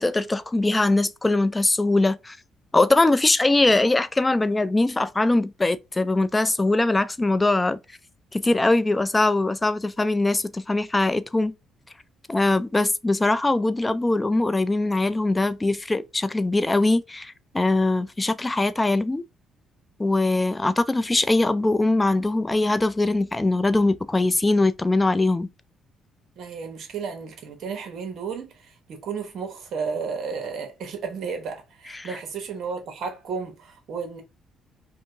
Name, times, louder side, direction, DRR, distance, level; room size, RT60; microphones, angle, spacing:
voice 1, 0.0-2.4 2.7-7.8 8.3-11.5 12.3-19.2 20.0-25.5 32.0-32.1, left 2 dB, 15° left, 0.3 m, -22 dB
voice 2, 26.4-34.2, right 5 dB, 65° right, 1.1 m, -33 dB
2.8 x 2.6 x 2.7 m
cardioid pair, 90°, 0 cm